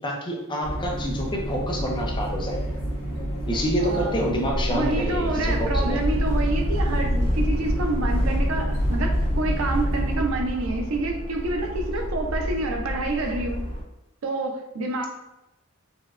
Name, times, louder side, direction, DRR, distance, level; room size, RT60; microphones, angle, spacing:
voice 1, 0.0-2.6 3.5-6.0 6.9-7.0, equal, 25° left, 0 dB, 0.5 m, -28 dB
sound 1, 0.6-10.2, equal, 75° left, 1.2 m, -30 dB
voice 2, 3.8-4.2 4.7-13.6 14.2-15.1, right 2 dB, 85° right, 4 dB, 0.5 m, -28 dB
sound 2, 4.9-13.8, equal, 40° left, 1.4 m, -27 dB
4.2 x 2.1 x 2.3 m, 0.95 s
head